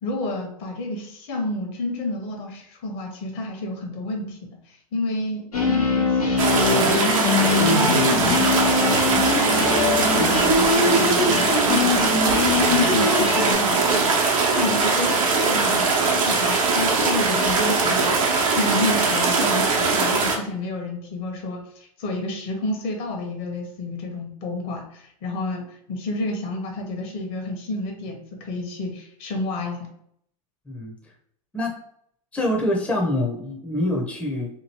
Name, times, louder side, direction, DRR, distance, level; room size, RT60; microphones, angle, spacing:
voice 1, 0.0-8.6 9.0-29.9, left 2 dB, 55° left, 3 dB, 1.0 m, -30 dB
sound 1, 5.5-13.5, left 3 dB, 85° left, 1.1 m, -22 dB
sound 2, 6.4-20.4, right 4 dB, 70° right, 0.8 m, -21 dB
voice 2, 32.3-34.5, left 1 dB, 5° left, -1 dB, 0.6 m, -25 dB
2.9 x 2.6 x 2.8 m, 0.67 s
hypercardioid pair, 95°, 18 cm